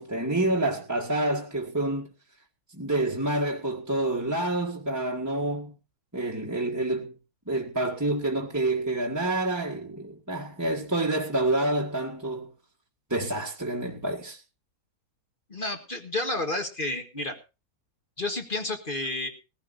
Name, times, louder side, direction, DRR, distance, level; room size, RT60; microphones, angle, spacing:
voice 1, 0.0-2.1 2.7-5.7 6.1-7.1 7.5-12.5 13.1-14.4, right 2 dB, 10° right, 1.6 m, -28 dB
voice 2, 15.5-17.4 18.2-19.3, left 2 dB, 35° left, 1.8 m, -30 dB
20.0 x 15.5 x 2.6 m
omnidirectional pair, 1.6 m